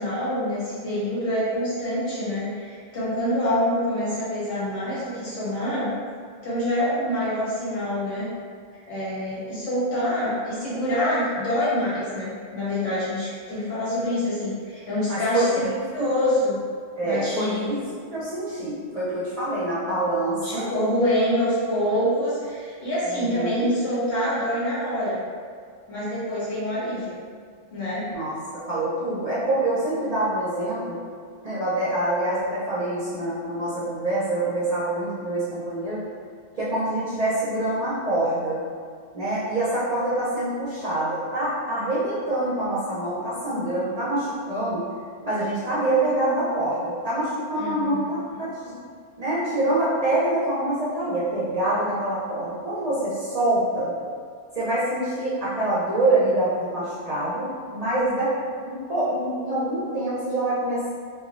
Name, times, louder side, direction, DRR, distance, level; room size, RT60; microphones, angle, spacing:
voice 1, 0.0-5.9 6.4-8.3 8.9-15.6 15.9-16.6 17.0-17.7 20.4-25.2 25.9-27.2 27.7-28.0 47.5-48.1, left 1 dB, 80° left, -11 dB, 1.5 m, -26 dB
voice 2, 15.1-16.1 17.0-17.8 18.1-20.7 23.1-23.7 28.1-31.0 31.4-36.0 36.6-38.6 39.1-44.8 45.2-48.6 49.2-53.9 54.5-58.3 58.7-60.9, right 1 dB, 40° right, -11 dB, 0.6 m, -25 dB
3.1 x 2.4 x 2.5 m, 2.1 s
omnidirectional pair, 1.3 m